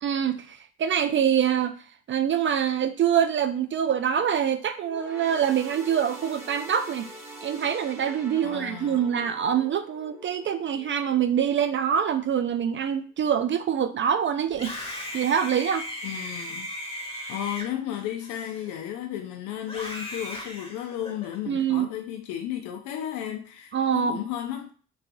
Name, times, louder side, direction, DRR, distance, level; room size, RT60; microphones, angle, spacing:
voice 1, 0.0-1.7 2.1-7.1 7.4-14.7 15.1-15.9 21.5-21.9 23.7-24.2, right 8 dB, 40° right, 0.4 m, -25 dB
sound 1, 4.8-12.5 12.9-13.1 14.0-14.1, right 1 dB, 10° right, 1.1 m, -45 dB
voice 2, 8.4-9.0 16.0-16.7 17.3-24.7, left 11 dB, 75° left, 0.5 m, -34 dB
Screaming, 14.5-19.0 19.6-21.4, left 1 dB, 20° left, 1.2 m, -37 dB
3.1 x 2.6 x 2.6 m
hypercardioid pair, 60°, 31 cm